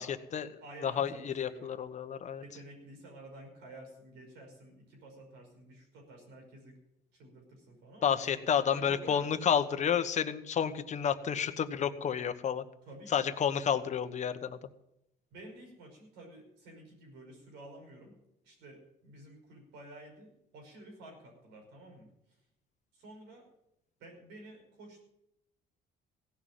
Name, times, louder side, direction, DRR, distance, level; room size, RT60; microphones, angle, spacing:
voice 1, 0.0-0.5 0.8-2.4 8.0-12.6 13.1-14.6, left 8 dB, 45° left, 9 dB, 1.1 m, -30 dB
voice 2, 0.6-1.7 2.4-6.8 7.1-9.4 12.9-13.1 15.3-18.1 18.4-22.1 22.9-23.4 24.0-25.0, right 1 dB, 90° right, 2 dB, 5.6 m, -51 dB
16.5 x 6.3 x 9.2 m, 0.81 s
cardioid pair, 110°, 17 cm